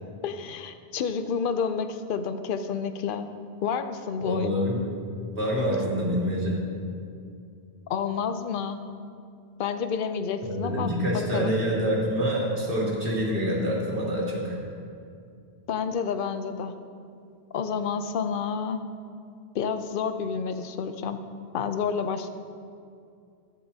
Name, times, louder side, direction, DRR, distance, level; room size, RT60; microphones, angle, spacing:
voice 1, 0.2-3.3 3.6-4.7 7.9-8.8 9.6-11.5 15.7-16.7 17.5-18.8 19.5-21.2 21.5-22.3, left 6 dB, 55° left, 9 dB, 0.7 m, -29 dB
voice 2, 4.2-4.8 5.3-6.6 10.4-14.6, equal, 50° right, -4 dB, 2.2 m, -26 dB
14.0 x 12.0 x 2.8 m, 2.4 s
omnidirectional pair, 1.2 m